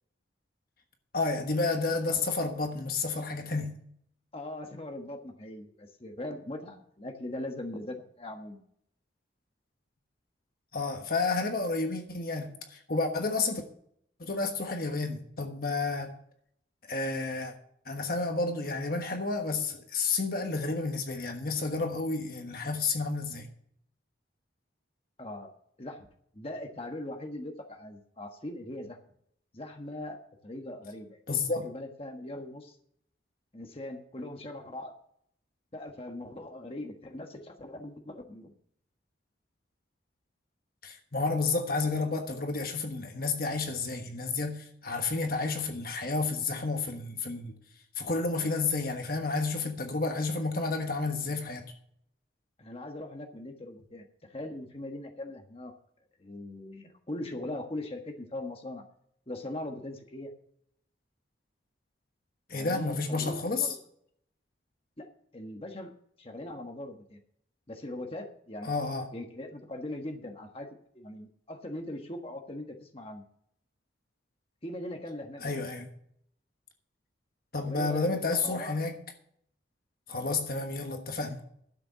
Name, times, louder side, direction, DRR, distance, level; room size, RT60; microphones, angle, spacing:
voice 1, 1.1-3.8 10.7-13.6 14.2-16.1 16.8-17.5 17.8-23.5 31.3-31.7 40.8-47.5 47.9-51.6 62.5-63.8 68.6-69.1 75.4-75.9 77.5-79.0 80.1-81.4, left 3 dB, 50° left, 5 dB, 1.3 m, -31 dB
voice 2, 4.3-8.6 25.2-25.5 25.8-26.1 26.3-29.0 29.5-31.2 31.6-32.8 33.5-34.9 35.7-38.5 52.6-55.7 56.2-58.8 59.3-60.3 62.5-63.8 65.0-65.1 65.3-65.9 66.2-67.2 67.7-68.7 69.1-70.7 70.9-73.2 74.6-75.7 77.6-78.8, left 1 dB, 30° left, 3 dB, 1.3 m, -40 dB
12.0 x 6.9 x 6.7 m, 0.68 s
head